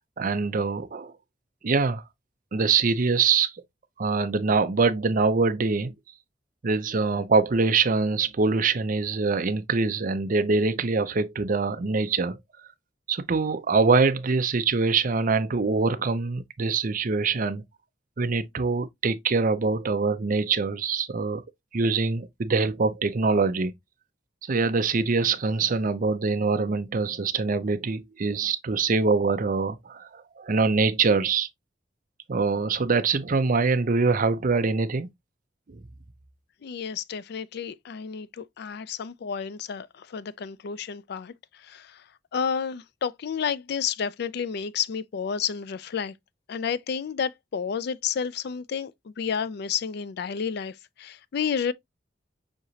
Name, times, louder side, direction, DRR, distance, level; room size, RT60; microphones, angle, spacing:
voice 1, 0.2-1.1 1.6-2.0 2.5-3.5 4.0-5.9 6.6-12.4 13.1-17.6 18.2-21.4 21.7-23.7 24.4-31.5 32.3-35.1 35.7-35.8, right 4 dB, 45° right, 0.5 m, -24 dB
voice 2, 36.6-42.0 42.3-46.1 46.5-51.7, left 7 dB, 60° left, 0.4 m, -31 dB
6.4 x 2.9 x 2.7 m
head